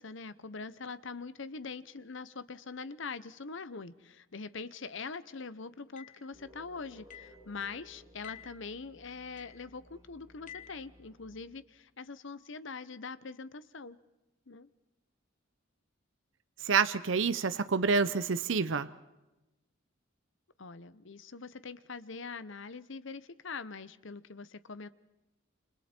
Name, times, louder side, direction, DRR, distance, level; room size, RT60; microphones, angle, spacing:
voice 1, 0.0-14.0 14.5-14.7 20.6-24.9, left 4 dB, 65° left, 15 dB, 0.9 m, -43 dB
sound 1, 6.0-6.2 7.1-7.4 8.2-8.6 9.4-9.6 10.5-10.8, left 10 dB, 40° left, 2.6 m, -49 dB
sound 2, 6.3-11.8, equal, 15° right, 7.8 m, -59 dB
voice 2, 16.6-18.9, right 5 dB, 65° right, 13 dB, 0.7 m, -28 dB
28.5 x 27.0 x 4.5 m, 1.0 s
head